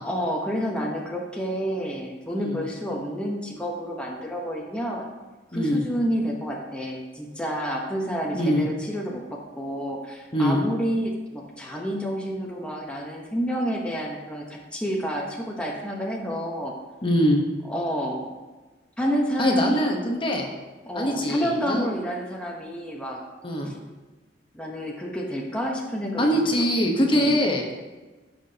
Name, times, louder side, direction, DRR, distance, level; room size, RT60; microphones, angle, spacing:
voice 1, 0.0-5.1 5.5-16.7 17.7-18.3 19.0-19.9 20.9-23.2 23.6-23.8 24.5-26.4 27.1-27.4, equal, 5° left, -2 dB, 1.0 m, -29 dB
voice 2, 2.3-2.6 5.5-5.8 8.3-8.7 10.3-10.6 17.0-17.4 19.4-20.5 20.9-21.9 23.4-23.7 26.2-27.7, equal, 30° left, 1 dB, 1.1 m, -23 dB
15.5 x 5.9 x 2.9 m, 1.2 s
head